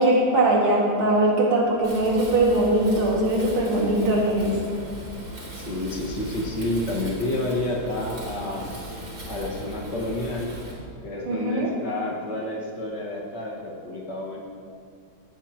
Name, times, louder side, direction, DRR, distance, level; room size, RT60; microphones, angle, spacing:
voice 1, 0.0-4.6 11.3-11.7, right 1 dB, 80° right, -3 dB, 3.0 m, -21 dB
Wind, 1.8-10.7, equal, 45° right, 4.3 m, -38 dB
voice 2, 5.5-8.7 9.3-10.5 11.0-14.4, left 1 dB, 55° left, -2 dB, 2.3 m, -30 dB
17.5 x 11.5 x 3.0 m, 2.4 s
omnidirectional pair, 2.3 m